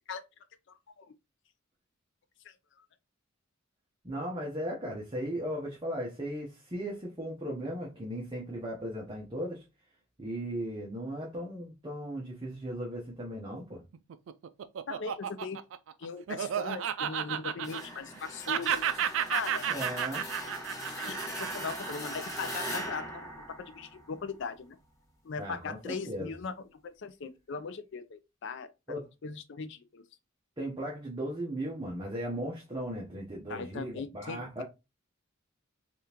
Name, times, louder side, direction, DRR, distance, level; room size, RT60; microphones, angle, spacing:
voice 1, 0.7-1.1 2.4-2.5 14.9-15.6 16.0-18.9 19.3-19.6 21.0-23.3 23.6-24.8 25.2-26.5 26.8-29.0 29.2-30.0 33.5-34.6, left 5 dB, 60° left, 0.4 m, -39 dB
voice 2, 4.0-9.6 10.2-13.8 19.7-20.2 25.4-26.3 28.9-29.1 30.6-34.6, equal, 20° right, 0.7 m, -37 dB
Laughter, 13.9-18.2 18.5-22.9, right 9 dB, 65° right, 0.3 m, -33 dB
sound 1, 17.6-24.4, equal, 15° left, 0.9 m, -40 dB
3.5 x 2.4 x 2.8 m
head